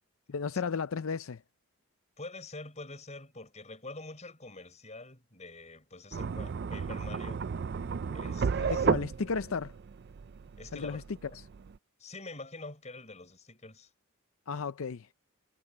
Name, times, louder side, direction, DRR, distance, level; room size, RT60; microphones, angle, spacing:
voice 1, 0.3-1.4 8.6-9.7 10.7-11.0 14.5-15.1, left 5 dB, 65° left, 0.5 m, -34 dB
voice 2, 2.2-7.4 8.1-8.9 10.6-11.0 12.0-13.9, left 2 dB, 30° left, 5.5 m, -46 dB
sound 1, 6.1-11.8, right 5 dB, 50° right, 0.4 m, -33 dB
head